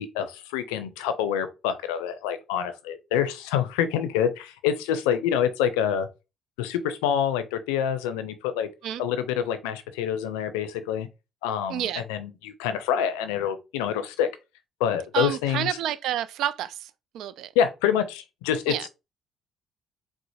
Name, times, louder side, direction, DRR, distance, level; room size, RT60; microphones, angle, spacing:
voice 1, 0.0-6.1 6.6-8.7 9.0-11.1 11.4-14.3 14.8-15.8 17.6-18.9, left 9 dB, 85° left, 0.5 m, -26 dB
voice 2, 11.7-12.0 15.1-16.8 17.1-17.5 18.7-18.9, right 11 dB, 70° right, 0.4 m, -29 dB
4.4 x 2.1 x 2.7 m
hypercardioid pair, 60°, 0 cm